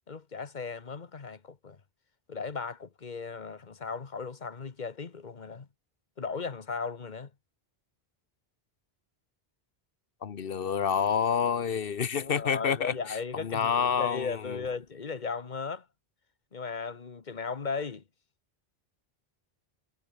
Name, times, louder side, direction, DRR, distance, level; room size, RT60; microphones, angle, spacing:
voice 1, 0.1-1.8 2.3-5.7 6.2-7.3 12.1-15.9 16.5-18.0, left 5 dB, 45° left, 1.4 m, -36 dB
voice 2, 10.2-12.9 13.3-14.6, left 7 dB, 65° left, 1.1 m, -28 dB
omnidirectional pair, 1.0 m